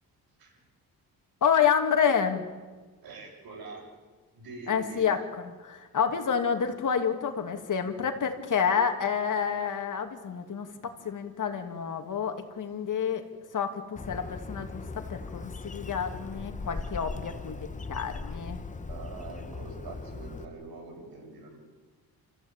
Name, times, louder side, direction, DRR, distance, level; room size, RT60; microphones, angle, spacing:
voice 1, 1.4-2.4 4.7-10.7 11.0-13.2 13.5-18.6, left 7 dB, 60° left, 5 dB, 2.7 m, -28 dB
voice 2, 3.0-3.9 4.3-5.1 17.1-17.7 18.9-21.6, right 3 dB, 85° right, 0 dB, 7.5 m, -44 dB
Bird, 14.0-20.5, left 3 dB, 20° left, 1.1 m, -39 dB
30.0 x 15.0 x 9.1 m, 1.4 s
cardioid pair, 120°, 36 cm